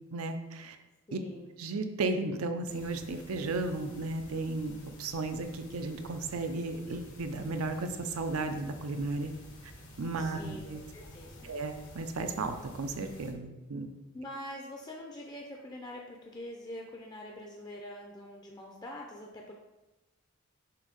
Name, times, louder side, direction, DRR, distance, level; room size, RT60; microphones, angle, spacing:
voice 1, 0.1-0.8 1.1-1.2 1.6-9.3 10.0-10.8 11.4-13.9, right 3 dB, 90° right, 7 dB, 0.6 m, -34 dB
voice 2, 1.1-1.5 10.2-10.6 10.9-11.5 14.1-19.5, left 1 dB, 20° left, 0 dB, 0.5 m, -44 dB
sound 1, 2.7-13.3, left 1 dB, 80° left, 1.3 m, -51 dB
6.7 x 2.7 x 5.2 m, 1.0 s
head